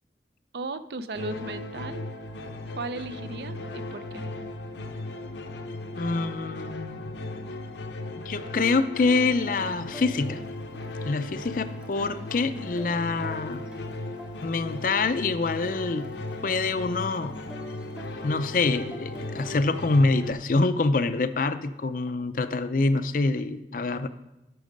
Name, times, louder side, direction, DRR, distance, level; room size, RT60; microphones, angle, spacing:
voice 1, 0.5-2.0 2.7-4.3, right 3 dB, 65° right, 12 dB, 0.5 m, -36 dB
sound 1, 1.1-20.3, left 2 dB, 85° left, 0.9 m, -37 dB
voice 2, 6.0-7.1 8.1-10.4 11.0-13.6 14.4-16.1 16.4-17.4 18.2-24.1, left 3 dB, 50° left, 12 dB, 0.5 m, -26 dB
sound 2, 9.2-20.7, right 1 dB, 5° right, 0.6 m, -47 dB
12.5 x 6.1 x 5.2 m, 0.94 s
head